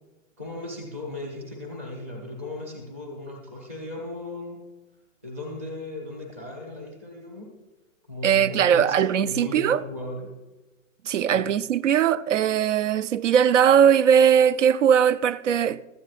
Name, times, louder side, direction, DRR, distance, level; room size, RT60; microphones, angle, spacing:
voice 1, 0.4-4.6 5.2-7.5 8.1-10.3 11.3-11.6, left 2 dB, 10° right, 0.6 m, -36 dB
voice 2, 8.2-9.8 11.1-15.8, right 8 dB, 65° right, 0.5 m, -20 dB
15.5 x 13.0 x 2.5 m
hypercardioid pair, 180°, 40 cm